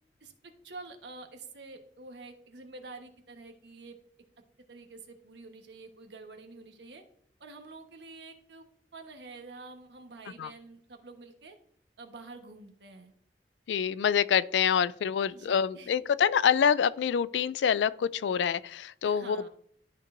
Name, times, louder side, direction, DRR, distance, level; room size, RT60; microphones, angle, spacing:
voice 1, 0.6-4.0 4.7-7.0 7.4-8.7 8.9-11.6 12.0-13.1 15.3-16.1 19.0-19.5, right 3 dB, 80° right, 1.2 m, -48 dB
voice 2, 13.7-19.5, left 7 dB, 90° left, 0.3 m, -26 dB
12.5 x 4.5 x 2.6 m
head